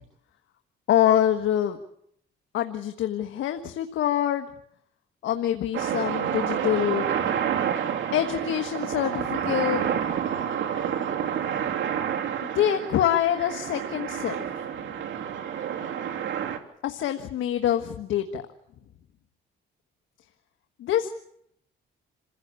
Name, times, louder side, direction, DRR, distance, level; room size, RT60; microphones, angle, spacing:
voice 1, 0.9-1.8 2.5-4.5 5.2-7.1 8.1-10.0 12.5-14.4 16.8-18.4 20.8-21.1, left 11 dB, 80° left, 6 dB, 1.5 m, -25 dB
sound 1, 5.7-16.6, right 8 dB, 70° right, 2.9 m, -29 dB
27.5 x 16.0 x 8.4 m, 0.74 s
cardioid pair, 90°, 20 cm